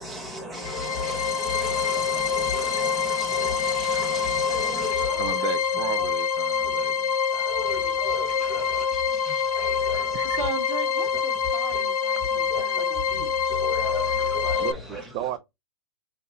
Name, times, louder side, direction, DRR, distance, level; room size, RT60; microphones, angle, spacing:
voice 1, 0.0-5.4 6.0-6.1 7.3-8.8 9.3-10.3 12.5-12.6 13.5-15.1, left 1 dB, ahead, 1.1 m, -35 dB
sound 1, 0.5-14.7, left 6 dB, 80° left, 0.5 m, -26 dB
voice 2, 5.2-7.2 9.8-10.4 14.6-15.4, right 12 dB, 25° right, 0.4 m, -34 dB
voice 3, 10.2-13.6, right 5 dB, 70° right, 1.4 m, -38 dB
5.7 x 2.7 x 2.6 m
hypercardioid pair, 140°, 18 cm